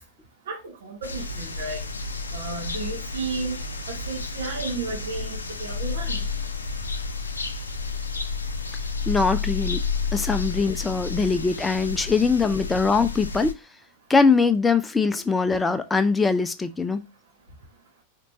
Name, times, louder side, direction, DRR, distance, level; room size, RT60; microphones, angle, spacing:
voice 1, 0.5-1.8 2.3-3.6 3.9-6.3, right 3 dB, 60° right, 1.1 m, -33 dB
sound 1, 1.0-13.5, left 4 dB, 75° left, 0.5 m, -31 dB
voice 2, 9.1-9.8 10.1-13.5 14.1-17.0, left 4 dB, 10° left, 0.4 m, -22 dB
4.4 x 2.9 x 2.7 m
figure-of-eight pair, 90°, 0 cm